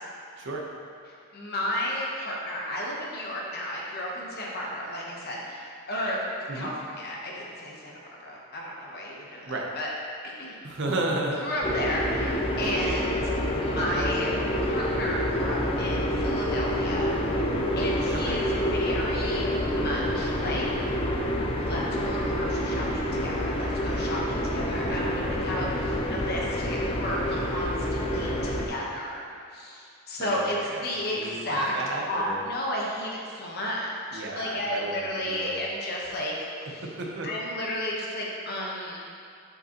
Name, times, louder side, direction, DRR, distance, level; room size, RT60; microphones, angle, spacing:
voice 1, 1.3-6.2 6.5-9.9 10.2-10.6 11.4-13.2 13.6-14.3 14.7-17.1 17.8-18.4 18.7-20.7 21.6-29.3 29.5-30.6 30.8-31.7 32.1-36.3 36.7-36.8 37.2-39.1, left 1 dB, 45° left, -3 dB, 1.0 m, -33 dB
voice 2, 10.6-11.4 18.1-18.4 24.9-25.4 30.2-32.5 34.1-35.6 36.0-36.1 36.4-37.3, right 2 dB, 55° right, -1 dB, 0.8 m, -33 dB
sound 1, 11.6-28.7, equal, 25° left, 0.5 m, -28 dB
8.0 x 5.1 x 2.9 m, 2.4 s
head